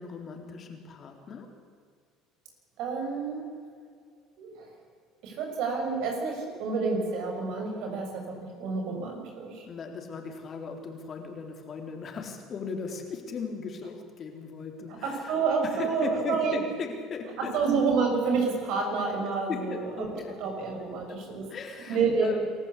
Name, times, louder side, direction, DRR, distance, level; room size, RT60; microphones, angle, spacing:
voice 1, 0.0-1.6 9.7-15.3 15.6-17.6 19.5-20.4 20.8-21.2 21.5-22.5, left 5 dB, 45° left, 4 dB, 4.0 m, -38 dB
voice 2, 2.8-3.5 4.4-4.7 5.2-9.7 14.9-16.6 17.4-20.1 20.4-21.5 21.9-22.3, right 4 dB, 70° right, 2 dB, 6.8 m, -29 dB
27.0 x 14.0 x 8.5 m, 2.1 s
supercardioid pair, 80°, 0 cm